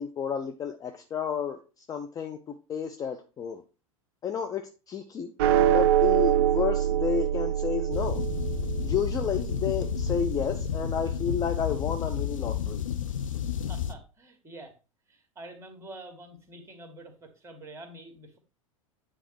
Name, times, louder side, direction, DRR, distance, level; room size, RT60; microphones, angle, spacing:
voice 1, 0.0-3.6 4.2-5.3 5.7-8.2 8.8-12.8, left 7 dB, 20° left, 0.5 m, -31 dB
sound 1, 5.4-11.9, right 10 dB, 45° right, 0.4 m, -26 dB
sound 2, 7.9-13.9, left 9 dB, 70° left, 0.7 m, -31 dB
voice 2, 13.7-14.7 15.1-18.4, right 1 dB, 15° right, 1.9 m, -46 dB
9.1 x 3.6 x 4.7 m
figure-of-eight pair, 85°, 18 cm